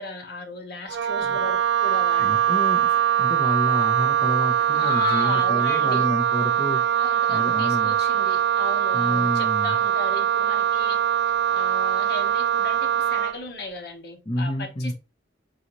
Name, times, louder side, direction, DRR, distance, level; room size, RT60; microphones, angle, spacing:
voice 1, 0.0-2.4 4.7-6.1 7.0-11.0 11.5-14.9, left 2 dB, 55° left, 1.2 m, -35 dB
Wind instrument woodwind instrument, 0.9-13.4, right 10 dB, 65° right, 0.3 m, -22 dB
voice 2, 2.2-7.0 7.3-7.9 8.9-9.8 14.3-14.9, left 1 dB, 25° left, 0.7 m, -29 dB
4.0 x 3.9 x 3.0 m
head